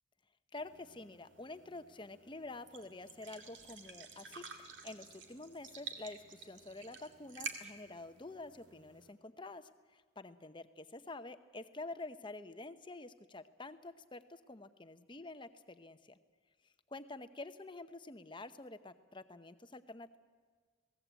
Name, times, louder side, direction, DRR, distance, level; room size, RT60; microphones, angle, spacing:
voice 1, 0.5-16.2 16.9-20.2, left 2 dB, 25° left, 11 dB, 0.8 m, -48 dB
sound 1, 0.6-9.1, right 5 dB, 60° right, 2.3 m, -51 dB
27.5 x 18.5 x 8.2 m, 1.5 s
head